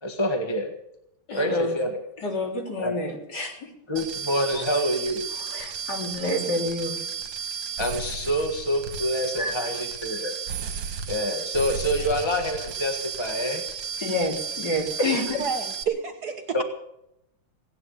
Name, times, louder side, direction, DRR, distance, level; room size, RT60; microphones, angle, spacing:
voice 1, 0.0-0.7 1.3-2.0 2.8-2.9 3.9-5.3 7.8-10.3 11.1-13.6 15.0-15.2 16.5-16.6, equal, 15° left, 4 dB, 1.4 m, -27 dB
voice 2, 1.3-1.8 2.2-3.7 4.5-4.6 5.4-7.0 9.4-9.5 14.0-15.4, left 1 dB, 50° left, 1 dB, 3.9 m, -28 dB
sound 1, 4.0-15.8, right 7 dB, 85° right, 2.5 m, -33 dB
voice 3, 15.4-16.6, right 6 dB, 55° right, 6 dB, 1.6 m, -29 dB
17.5 x 11.0 x 7.1 m, 0.80 s
omnidirectional pair, 2.3 m